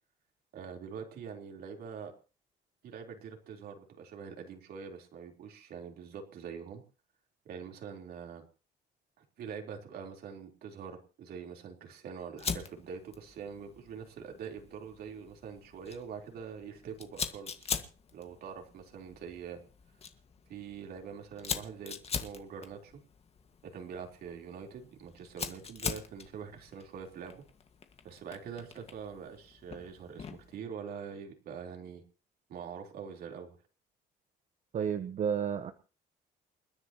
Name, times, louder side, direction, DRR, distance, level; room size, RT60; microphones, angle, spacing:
voice 1, 0.5-2.1 2.8-6.8 7.5-8.4 9.2-17.7 18.1-19.6 20.5-23.0 23.6-27.4 28.0-32.0 32.5-33.6, right 6 dB, 65° right, 2 dB, 3.9 m, -44 dB
Fire, 12.4-30.6, left 6 dB, 35° left, 1.8 m, -43 dB
voice 2, 34.7-35.7, right 7 dB, 45° right, 8 dB, 1.2 m, -31 dB
29.0 x 10.0 x 3.0 m, 0.35 s
cardioid pair, 110°, 17 cm